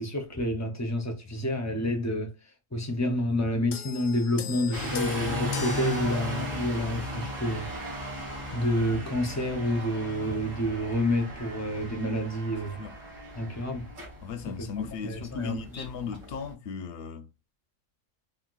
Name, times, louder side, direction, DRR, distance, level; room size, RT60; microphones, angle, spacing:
voice 1, 0.0-2.3 2.7-7.7 8.0-12.8 13.4-13.9 14.6-15.8, left 1 dB, 25° left, 0.3 m, -29 dB
sound 1, 3.7-7.3 8.2-8.4, left 9 dB, 80° left, 1.0 m, -39 dB
sound 2, 4.7-16.5, equal, 85° right, 1.9 m, -36 dB
voice 2, 14.2-17.3, left 6 dB, 65° left, 0.7 m, -36 dB
4.2 x 2.1 x 2.3 m
omnidirectional pair, 1.3 m